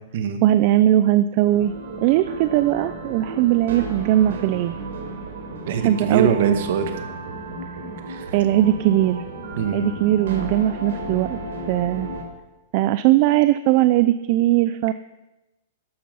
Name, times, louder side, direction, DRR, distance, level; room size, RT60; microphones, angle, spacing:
voice 1, 0.4-1.7 2.0-4.8 5.8-6.6 8.3-9.2 9.7-11.4 11.7-12.1 12.7-14.9, right 13 dB, 35° right, 13 dB, 0.4 m, -19 dB
sound 1, 1.4-12.2, right 2 dB, 80° right, 4.0 m, -33 dB
voice 2, 5.7-7.0 8.1-8.4 9.6-9.9, right 6 dB, 50° right, 7 dB, 1.9 m, -23 dB
14.0 x 11.5 x 5.5 m, 1.0 s
supercardioid pair, 170°, 0 cm